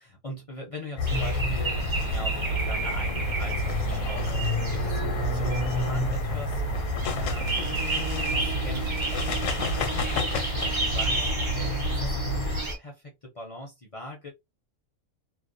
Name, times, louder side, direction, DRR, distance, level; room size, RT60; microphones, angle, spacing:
voice 1, 0.0-6.8 7.1-7.8 8.1-14.3, left 1 dB, 45° left, 0.4 m, -41 dB
sound 1, 1.0-12.6, left 1 dB, 80° left, 1.0 m, -29 dB
sound 2, 1.0-12.8, right 2 dB, 35° right, 0.5 m, -31 dB
2.5 x 2.0 x 2.5 m
omnidirectional pair, 1.3 m